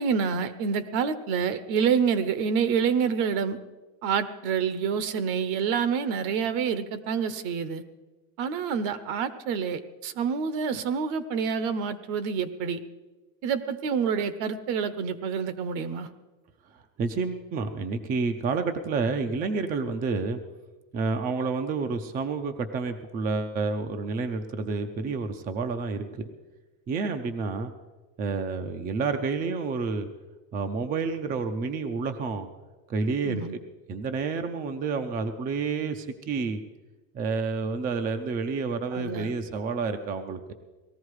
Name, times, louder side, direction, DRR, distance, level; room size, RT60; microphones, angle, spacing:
voice 1, 0.0-3.6 4.0-7.8 8.4-12.8 13.4-16.1 33.2-33.6 38.9-39.3, right 6 dB, 60° right, 14 dB, 1.1 m, -27 dB
voice 2, 17.0-20.4 20.9-26.2 26.9-27.7 28.2-30.1 30.5-32.5 32.9-33.4 33.9-36.6 37.1-40.5, right 4 dB, 20° right, 7 dB, 0.5 m, -29 dB
18.5 x 14.5 x 4.8 m, 1.2 s
cardioid pair, 175°, 43 cm